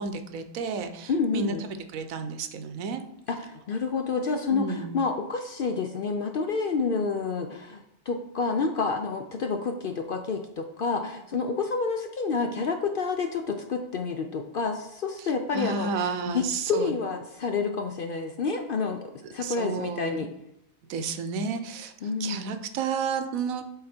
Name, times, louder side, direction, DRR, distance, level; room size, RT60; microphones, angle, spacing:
voice 1, 0.0-3.0 4.5-5.0 15.2-15.3 15.5-16.9 19.4-20.2 20.9-21.9 22.2-23.6, right 5 dB, 90° right, 9 dB, 1.1 m, -31 dB
voice 2, 1.1-1.6 3.3-19.0 19.3-20.3 22.0-22.5, left 4 dB, 60° left, 5 dB, 0.6 m, -29 dB
7.5 x 4.0 x 4.3 m, 0.80 s
omnidirectional pair, 1.4 m